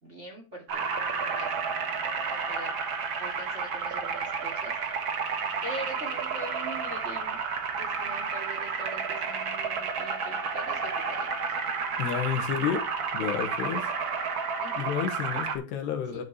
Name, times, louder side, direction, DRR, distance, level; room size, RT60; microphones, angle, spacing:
voice 1, 0.0-0.9 1.3-2.8 3.2-5.1 5.6-7.4 7.8-11.6 14.6-14.9 16.1-16.2, right 1 dB, 20° right, 2.1 m, -43 dB
sound 1, 0.7-15.5, right 5 dB, 65° right, 1.2 m, -31 dB
voice 2, 12.0-12.9 13.1-13.9 14.8-16.2, left 8 dB, 85° left, 3.6 m, -30 dB
12.0 x 5.2 x 4.7 m
omnidirectional pair, 4.6 m